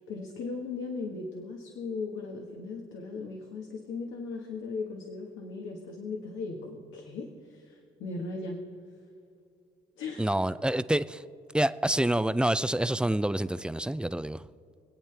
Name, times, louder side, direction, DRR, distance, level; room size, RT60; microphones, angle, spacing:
voice 1, 0.0-8.6 10.0-10.4, left 4 dB, 85° left, 1 dB, 1.5 m, -38 dB
voice 2, 10.2-11.2 11.5-14.4, right 1 dB, 5° right, 14 dB, 0.4 m, -27 dB
26.0 x 8.7 x 3.4 m, 2.7 s
cardioid pair, 90°, 20 cm